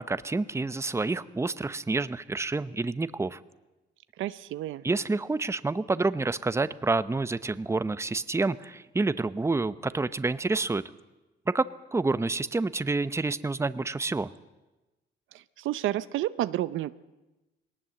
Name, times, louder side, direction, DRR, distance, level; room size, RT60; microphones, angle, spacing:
voice 1, 0.0-3.4 4.8-10.8 11.5-14.3, right 3 dB, 15° right, 15 dB, 0.8 m, -28 dB
voice 2, 4.2-4.8 15.6-16.9, right 14 dB, 80° right, 15 dB, 0.6 m, -30 dB
20.5 x 18.5 x 7.6 m, 1.1 s
cardioid pair, 90°, 20 cm